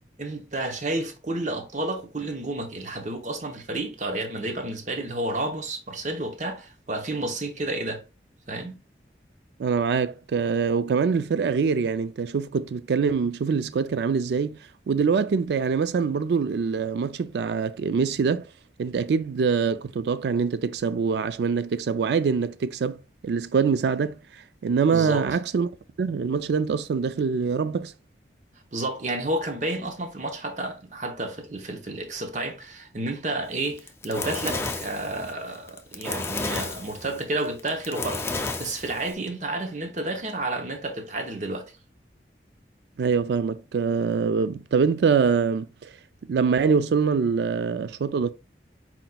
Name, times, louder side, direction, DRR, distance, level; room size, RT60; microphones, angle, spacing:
voice 1, 0.2-8.0 8.5-8.7 24.9-25.3 28.7-38.3 38.6-41.7, right 2 dB, 45° right, 0.8 m, -31 dB
voice 2, 9.6-14.6 14.9-18.5 18.8-24.2 24.6-25.7 26.0-27.9 43.0-45.9 46.3-48.3, right 5 dB, 70° right, 0.3 m, -24 dB
Fire, 33.6-39.1, left 3 dB, 15° left, 0.4 m, -32 dB
4.4 x 4.0 x 2.2 m
head